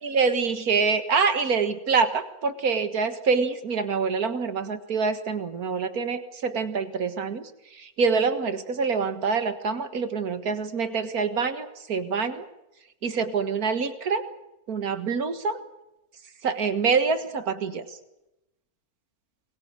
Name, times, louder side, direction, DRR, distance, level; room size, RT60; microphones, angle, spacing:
voice 1, 0.0-7.4 7.8-12.5 13.0-14.2 14.7-15.6 16.4-17.8, right 5 dB, 80° right, 10 dB, 2.1 m, -26 dB
23.5 x 21.0 x 7.9 m, 0.92 s
omnidirectional pair, 1.5 m